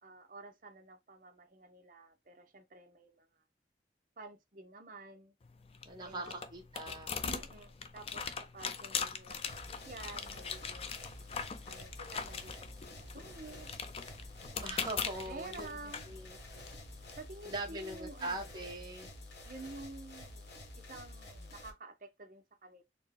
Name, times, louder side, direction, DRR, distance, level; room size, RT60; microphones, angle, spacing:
voice 1, 0.0-3.3 4.2-5.3 6.0-6.5 7.2-8.2 8.5-11.0 11.7-13.7 15.1-16.1 17.2-18.9 19.4-20.5 20.8-22.8, right 3 dB, 50° right, 0.7 m, -50 dB
sound 1, 5.4-17.1, left 6 dB, 35° left, 0.4 m, -41 dB
voice 2, 5.8-7.2 14.6-16.7 17.4-19.1, right 2 dB, 25° right, 1.0 m, -42 dB
sound 2, 9.5-21.7, left 1 dB, 70° left, 1.1 m, -50 dB
4.3 x 2.1 x 3.4 m
head